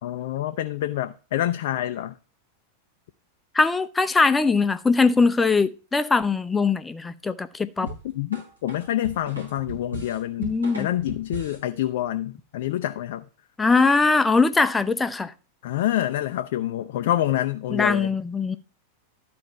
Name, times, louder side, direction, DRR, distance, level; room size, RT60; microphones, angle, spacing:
voice 1, 0.0-2.1 7.8-13.2 15.6-18.1, left 13 dB, 55° left, 0.5 m, -27 dB
voice 2, 3.5-7.9 10.4-10.9 13.6-15.3 17.7-18.6, left 4 dB, 10° left, 0.6 m, -21 dB
sound 1, 7.9-11.7, right 1 dB, 75° right, 3.6 m, -37 dB
12.0 x 4.3 x 5.8 m
figure-of-eight pair, 90°, 0 cm